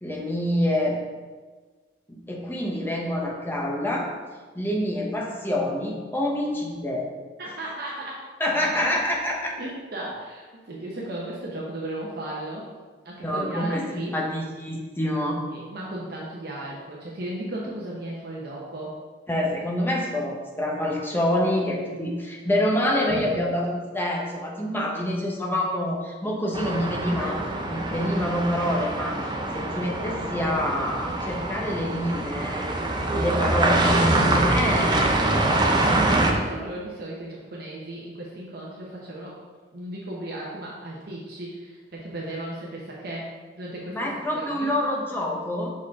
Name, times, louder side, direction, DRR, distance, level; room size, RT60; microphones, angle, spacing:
voice 1, 0.0-1.0 2.1-4.1 4.5-7.1 8.4-9.5 13.2-15.4 19.3-29.2 29.5-32.7 33.1-35.3 43.9-45.7, left 1 dB, 10° left, -2 dB, 0.9 m, -27 dB
voice 2, 7.4-8.2 9.6-12.6 13.0-14.1 15.5-19.0 23.1-23.4 27.2-27.4 27.6-27.8 30.3-30.6 33.1-33.3 35.8-39.4 39.7-44.0 44.3-44.7, right 1 dB, 55° right, -4 dB, 0.9 m, -36 dB
sound 1, 26.5-36.3, right 2 dB, 25° right, 0.6 m, -24 dB
5.9 x 4.6 x 3.6 m, 1.4 s
head